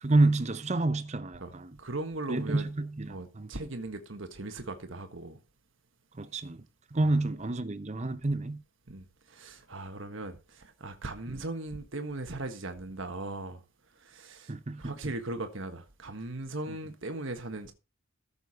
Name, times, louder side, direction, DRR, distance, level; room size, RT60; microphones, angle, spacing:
voice 1, 0.0-1.7 2.3-3.5 6.2-6.6 6.9-8.6 11.3-11.4 14.5-15.0, right 2 dB, 30° right, 0.8 m, -29 dB
voice 2, 1.8-2.7 3.1-5.4 7.0-7.1 8.9-13.6 14.0-14.5 14.8-17.7, right 2 dB, 60° right, 1.5 m, -38 dB
14.0 x 7.0 x 4.1 m
head